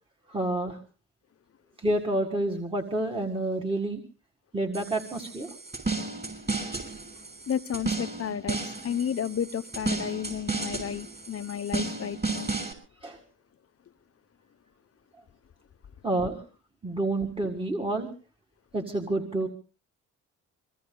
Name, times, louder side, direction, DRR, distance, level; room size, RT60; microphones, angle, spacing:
voice 1, 0.3-0.8 1.8-4.0 4.5-5.5 13.0-13.2 16.0-16.4 16.8-18.1 18.7-19.5, right 2 dB, 20° right, 1.8 m, -28 dB
sound 1, 4.7-12.7, right 3 dB, 35° right, 6.2 m, -33 dB
voice 2, 7.5-12.5, left 8 dB, 50° left, 0.8 m, -32 dB
25.5 x 23.0 x 2.2 m
cardioid pair, 90°, 30 cm